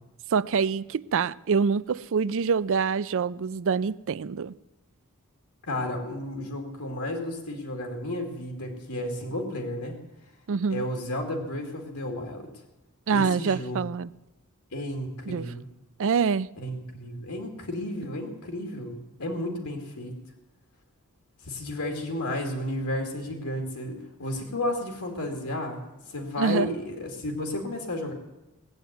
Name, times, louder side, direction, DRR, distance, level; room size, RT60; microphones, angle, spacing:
voice 1, 0.3-4.5 10.5-10.8 13.1-14.1 15.3-15.5 16.0-16.5 26.4-26.7, right 5 dB, 60° right, 0.4 m, -25 dB
voice 2, 5.7-10.0 10.7-12.5 13.1-13.8 14.7-15.7 16.6-20.1 21.4-28.1, left 1 dB, 85° left, 2.5 m, -32 dB
19.0 x 7.9 x 9.3 m
head